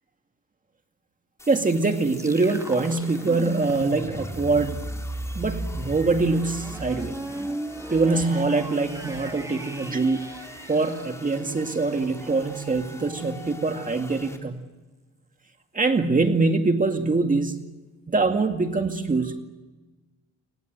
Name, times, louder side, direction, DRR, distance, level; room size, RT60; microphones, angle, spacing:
sound 1, 1.4-14.4, left 1 dB, 10° left, 4.5 m, -45 dB
voice 1, 1.5-4.8 5.3-7.2 7.9-10.3 10.7-14.6 15.7-17.6 18.1-19.3, right 3 dB, 25° right, 5 dB, 2.3 m, -24 dB
sound 2, 2.1-11.9, right 1 dB, 10° right, 1.7 m, -36 dB
28.5 x 25.5 x 7.9 m, 1.2 s
cardioid pair, 90°, 30 cm